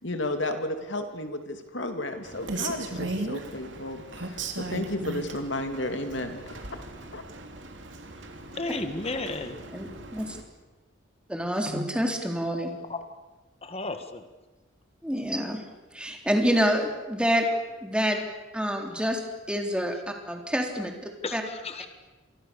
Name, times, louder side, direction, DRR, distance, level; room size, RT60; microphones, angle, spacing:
voice 1, 0.0-6.8 7.1-7.2, left 1 dB, 65° left, 3.0 m, -33 dB
Rain, 2.2-10.4, right 2 dB, 65° right, 3.3 m, -37 dB
voice 2, 8.6-9.6 12.9-13.0 13.6-14.3 18.1-18.2 21.2-21.9, left 3 dB, 30° left, 1.9 m, -33 dB
voice 3, 9.7-10.3 11.3-12.7 15.0-15.6 15.9-17.5 17.8-18.3 18.5-19.2 19.5-20.9 21.3-21.4, equal, 5° right, 3.6 m, -27 dB
28.5 x 25.0 x 7.0 m
head